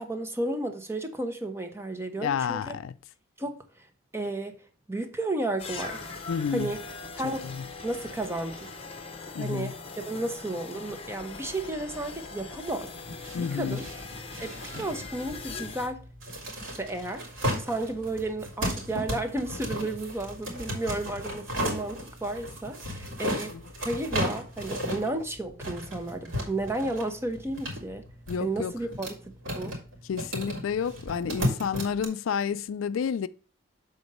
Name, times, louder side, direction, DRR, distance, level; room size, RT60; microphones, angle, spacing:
voice 1, 0.0-2.7 3.4-3.9 4.1-4.6 4.9-6.0 6.5-6.8 7.1-7.4 7.8-8.7 9.4-12.9 13.4-13.8 14.4-16.0 16.7-17.3 17.6-23.6 23.8-28.0 28.4-29.8, right 2 dB, 10° right, 0.8 m, -33 dB
voice 2, 2.1-2.9 6.3-6.8 7.2-7.7 9.3-9.7 13.3-13.8 23.5-23.7 28.3-28.7 30.1-33.3, left 7 dB, 80° left, 0.3 m, -30 dB
sound 1, 5.6-15.9, left 4 dB, 30° left, 0.9 m, -41 dB
sound 2, 13.0-32.0, equal, 75° right, 2.7 m, -35 dB
6.9 x 3.9 x 5.3 m
head